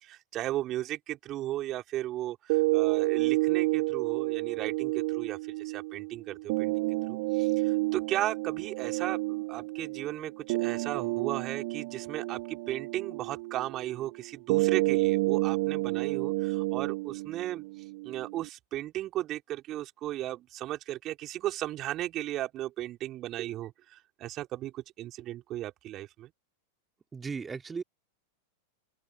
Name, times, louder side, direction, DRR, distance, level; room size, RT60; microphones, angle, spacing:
voice 1, 0.0-17.6 18.0-26.3, right 14 dB, 35° right, 4.5 m, -36 dB
sound 1, 2.5-18.5, right 23 dB, 50° right, 1.2 m, -30 dB
voice 2, 27.1-27.8, right 5 dB, 15° right, 3.2 m, -36 dB
open air
figure-of-eight pair, 90°, 0 cm